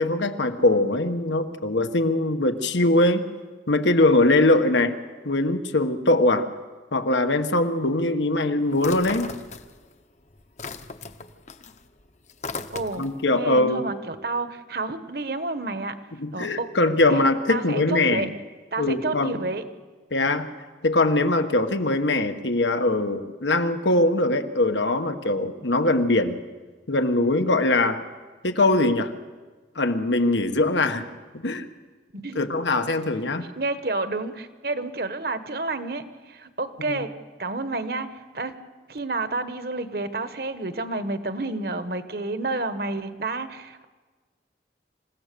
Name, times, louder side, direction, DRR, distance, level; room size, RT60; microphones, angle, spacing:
voice 1, 0.0-3.3 3.7-4.9 5.2-6.5 6.9-9.3 13.0-13.8 16.2-18.3 18.8-19.4 20.1-20.5 20.8-26.4 26.9-28.0 28.4-29.1 29.7-31.1 31.3-31.7 32.3-33.4 36.9-37.0, left 2 dB, 85° left, 8 dB, 1.4 m, -22 dB
sound 1, 8.8-10.0 10.3-13.2, left 4 dB, 40° left, 0.8 m, -37 dB
voice 2, 12.7-16.0 16.3-16.7 17.1-17.2 17.5-18.3 18.7-19.6 32.1-32.4 33.6-37.1 37.4-38.5 38.9-43.8, right 2 dB, 55° right, 10 dB, 1.3 m, -30 dB
27.0 x 16.5 x 6.9 m, 1.4 s
head